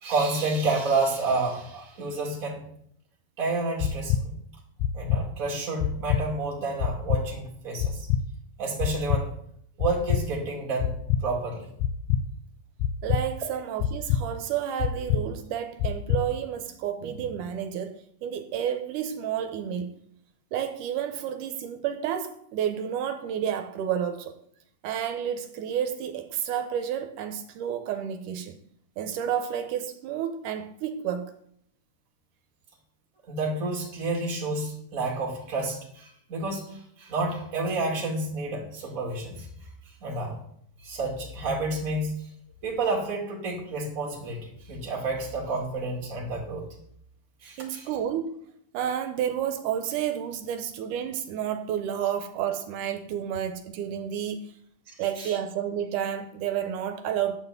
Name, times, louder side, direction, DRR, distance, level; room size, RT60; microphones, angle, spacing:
voice 1, 0.0-2.7 3.4-4.4 4.9-8.1 8.6-9.3 9.8-10.9 11.2-11.7 33.3-39.5 40.0-40.4 40.8-42.1 42.6-46.7 47.4-47.9 54.9-55.3, right 3 dB, 30° right, 2.0 m, -30 dB
sound 1, 3.8-4.2 4.8-5.2 5.8-6.2 6.8-7.2 7.8-8.2 8.8-9.2 9.8-10.2 10.8-11.2 11.8-12.2 12.8-13.2 13.8-14.2 14.8-15.2 15.8-16.2, left 9 dB, 80° left, 1.7 m, -24 dB
voice 2, 13.0-20.0 20.5-24.4 24.8-28.6 29.0-31.3 47.6-48.4 48.7-54.5 55.0-57.4, right 9 dB, 85° right, 2.1 m, -30 dB
9.1 x 4.1 x 6.8 m
omnidirectional pair, 3.7 m